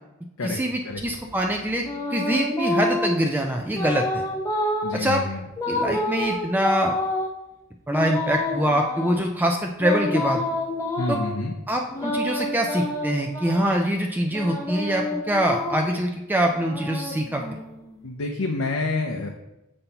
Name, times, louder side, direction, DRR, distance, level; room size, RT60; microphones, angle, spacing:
voice 1, 0.4-1.8 2.1-4.2 4.9-5.2 5.7-7.0 7.9-10.4 11.1-11.2 11.7-17.4, right 1 dB, 10° right, 2 dB, 0.3 m, -24 dB
sound 1, 1.0-3.3 3.7-5.0 5.6-7.3 7.9-9.2 9.8-11.3 11.9-13.8 14.3-16.0 16.5-17.9, left 1 dB, 15° left, 0.8 m, -28 dB
voice 2, 4.8-5.4 11.0-11.5 18.0-19.3, left 3 dB, 85° left, 1 dB, 0.6 m, -28 dB
6.8 x 5.3 x 2.8 m, 0.95 s
head